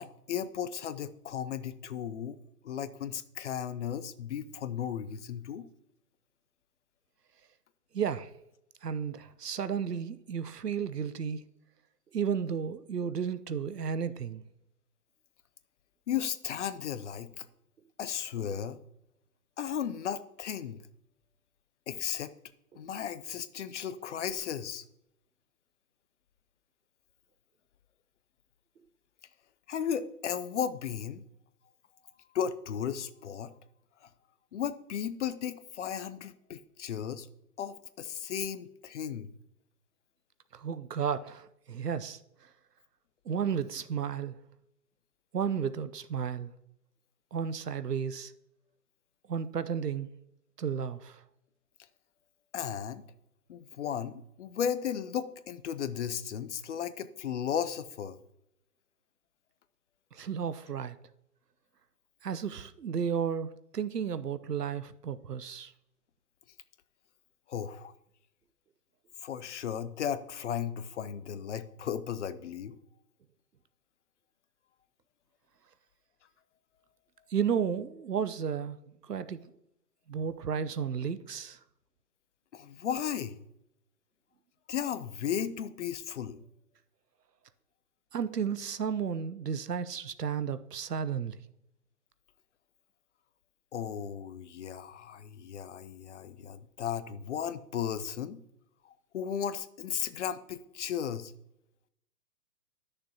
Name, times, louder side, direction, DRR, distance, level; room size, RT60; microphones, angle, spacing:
voice 1, 0.0-2.4 2.6-5.7 16.1-17.5 18.0-18.8 19.6-20.8 21.9-22.3 22.7-24.8 29.7-31.2 32.3-33.5 34.0-34.1 34.5-37.3 37.6-39.3 52.5-53.0 53.5-58.2 67.5-67.9 69.2-72.8 82.5-83.4 84.7-86.4 93.7-98.4 98.8-101.3, left 8 dB, 50° left, 0.7 m, -35 dB
voice 2, 7.9-8.3 8.8-11.4 12.1-14.4 22.7-22.8 40.5-42.5 43.3-44.4 45.3-46.5 47.3-48.3 49.3-50.1 50.6-51.2 60.1-61.0 62.2-65.7 77.3-78.8 79.0-79.5 80.1-81.6 88.1-91.4, right 7 dB, 90° right, 0.7 m, -33 dB
11.5 x 6.6 x 2.8 m
figure-of-eight pair, 130°, 46 cm